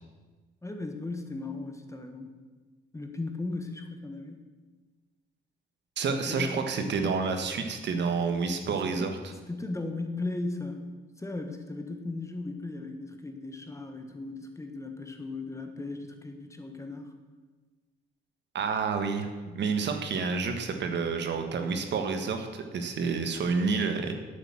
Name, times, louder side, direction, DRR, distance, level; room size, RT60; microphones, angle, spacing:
voice 1, 0.6-2.3 2.9-4.4 6.3-6.6 8.9-10.8 11.2-17.1, left 2 dB, 15° left, 5 dB, 1.4 m, -37 dB
voice 2, 6.0-9.2 18.5-19.3 19.5-24.1, right 5 dB, 65° right, 6 dB, 1.4 m, -29 dB
8.6 x 8.0 x 7.5 m, 1.3 s
cardioid pair, 90°, 20 cm